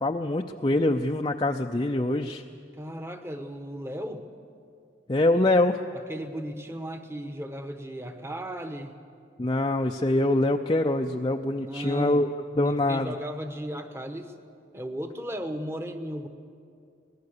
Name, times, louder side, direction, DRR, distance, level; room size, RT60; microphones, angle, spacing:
voice 1, 0.0-2.4 5.1-5.8 9.4-12.3 12.6-13.1, left 2 dB, 25° left, 3 dB, 0.5 m, -24 dB
voice 2, 2.7-4.3 5.9-9.0 11.5-12.3 12.6-14.3 14.7-16.3, equal, 15° right, 7 dB, 1.1 m, -36 dB
24.5 x 19.5 x 6.7 m, 2.4 s
head